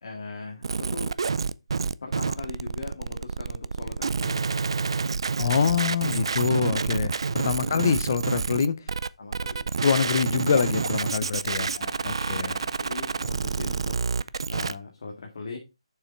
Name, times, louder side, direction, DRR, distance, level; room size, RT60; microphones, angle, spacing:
voice 1, 0.0-1.1 2.0-4.5 5.4-5.9 7.5-8.0 9.2-9.7 11.6-13.9 14.5-15.6, left 4 dB, 50° left, 2.1 m, -40 dB
sound 1, 0.6-14.7, right 5 dB, 55° right, 0.4 m, -28 dB
voice 2, 5.4-8.8 9.8-11.7 12.0-12.5, left 6 dB, 35° left, 0.6 m, -25 dB
6.9 x 5.6 x 4.4 m
hypercardioid pair, 170°, 3 cm